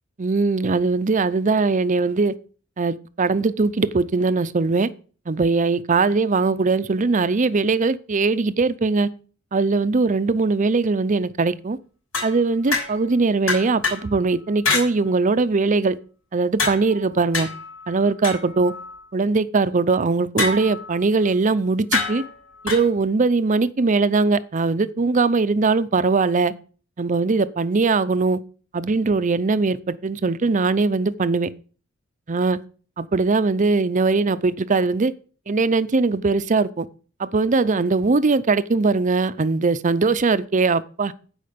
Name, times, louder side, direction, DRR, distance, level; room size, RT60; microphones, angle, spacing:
voice 1, 0.2-2.3 2.8-4.9 5.3-9.1 9.5-11.8 12.2-16.0 16.3-17.5 17.9-18.7 19.1-22.2 22.6-26.5 27.0-28.4 28.7-31.5 32.3-32.6 33.0-35.1 35.5-36.8 37.2-41.1, right 3 dB, 40° right, 0.6 m, -20 dB
sound 1, 12.1-13.1 13.5-14.1 14.6-14.9 16.6-19.0 20.4-21.0 21.9-22.9, left 3 dB, 75° left, 5.7 m, -26 dB
15.0 x 5.1 x 5.2 m
head